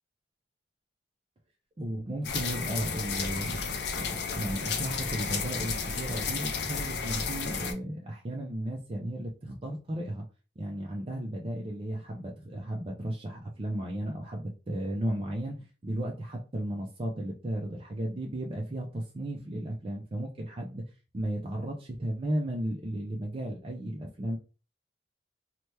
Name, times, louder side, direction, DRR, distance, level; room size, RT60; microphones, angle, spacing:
voice 1, 1.8-3.6 3.9-10.2 10.6-15.6 15.8-20.8 21.1-24.4, right 1 dB, 30° right, 0 dB, 0.5 m, -34 dB
sound 1, 2.2-7.7, left 5 dB, 65° left, 0.5 m, -32 dB
2.9 x 2.1 x 3.2 m, 0.33 s
head